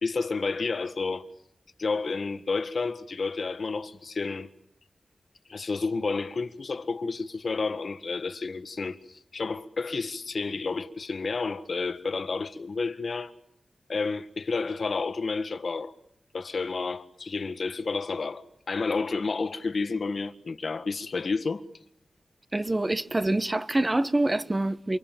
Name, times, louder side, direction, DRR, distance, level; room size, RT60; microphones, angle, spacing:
voice 1, 0.0-1.2 1.8-4.5 5.5-13.3 13.9-15.9 16.3-21.6, left 4 dB, 60° left, 1.7 m, -30 dB
voice 2, 22.5-25.0, right 2 dB, 20° right, 1.2 m, -26 dB
29.0 x 27.0 x 7.6 m
wide cardioid pair, 105°, 0 cm